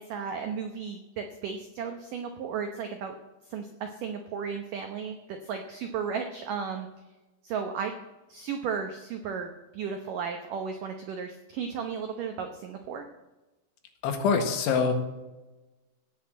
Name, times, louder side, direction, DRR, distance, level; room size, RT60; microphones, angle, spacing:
voice 1, 0.0-3.2 3.5-6.9 7.4-7.9 8.3-13.1, right 6 dB, 90° right, 5 dB, 1.8 m, -34 dB
voice 2, 14.0-14.9, left 5 dB, 85° left, 5 dB, 4.0 m, -24 dB
17.0 x 6.6 x 7.6 m, 1.1 s
omnidirectional pair, 5.3 m